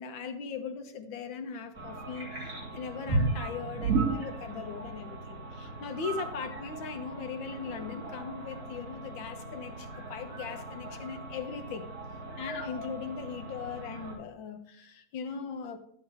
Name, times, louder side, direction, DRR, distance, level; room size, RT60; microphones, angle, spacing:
voice 1, 0.0-11.9 12.4-15.8, left 6 dB, 85° left, 1.8 m, -39 dB
sound 1, 1.7-14.1, right 3 dB, 45° right, 3.2 m, -36 dB
11.5 x 9.2 x 3.4 m
omnidirectional pair, 2.1 m